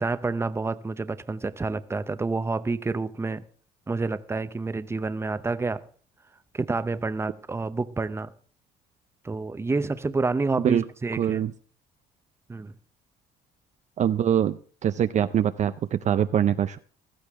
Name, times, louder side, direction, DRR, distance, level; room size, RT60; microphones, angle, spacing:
voice 1, 0.0-3.4 3.9-5.8 6.5-8.3 9.2-11.4 12.5-12.7, right 3 dB, 15° right, 0.7 m, -28 dB
voice 2, 11.1-11.5 14.0-16.8, right 9 dB, 45° right, 0.5 m, -24 dB
15.5 x 13.5 x 3.6 m
cardioid pair, 110°, 17 cm